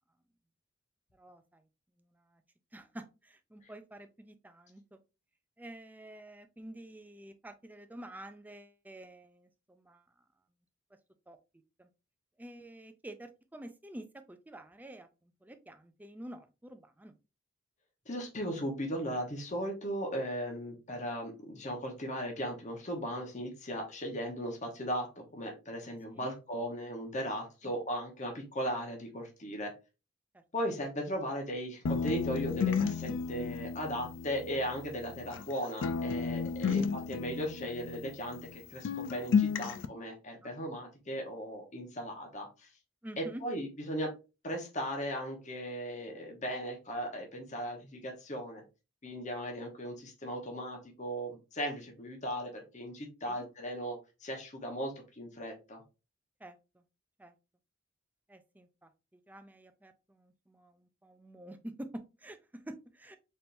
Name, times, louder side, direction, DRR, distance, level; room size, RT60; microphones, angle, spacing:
voice 1, 1.1-1.6 2.0-2.4 2.7-5.0 5.6-10.2 11.3-11.4 11.8-11.9 12.4-17.2 26.1-26.3 27.6-27.7 30.3-30.4 36.5-36.8 40.4-40.5 43.0-43.4 53.2-53.4 56.4-56.8 57.2-57.3 58.3-63.2, right 1 dB, 10° right, 8 dB, 0.4 m, -49 dB
voice 2, 18.1-29.7 30.5-42.7 43.2-44.1 44.4-48.6 49.0-55.8, equal, 35° left, 2 dB, 1.0 m, -37 dB
sound 1, 31.9-35.5 35.8-38.6 38.8-39.9, left 5 dB, 65° left, 0.4 m, -33 dB
4.3 x 3.6 x 2.5 m, 0.29 s
head